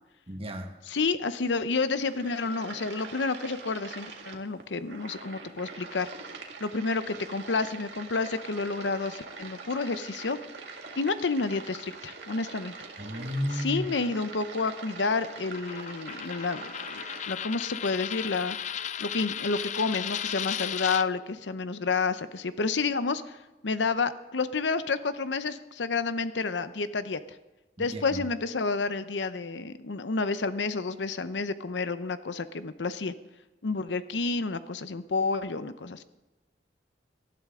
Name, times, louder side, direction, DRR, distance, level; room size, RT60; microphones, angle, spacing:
voice 1, 0.3-0.7 13.0-13.9 27.8-28.2, equal, 35° right, 4 dB, 1.5 m, -33 dB
voice 2, 0.9-6.1 6.6-10.4 11.0-12.7 13.6-18.6 19.0-23.4 23.6-27.2 27.8-33.1 33.6-36.0, left 4 dB, 85° left, 12 dB, 0.7 m, -30 dB
sound 1, 1.7-17.3, right 4 dB, 80° right, 1.8 m, -44 dB
Coin (dropping), 15.5-21.0, left 9 dB, 40° left, 0.4 m, -35 dB
18.5 x 12.5 x 3.7 m, 1.1 s
head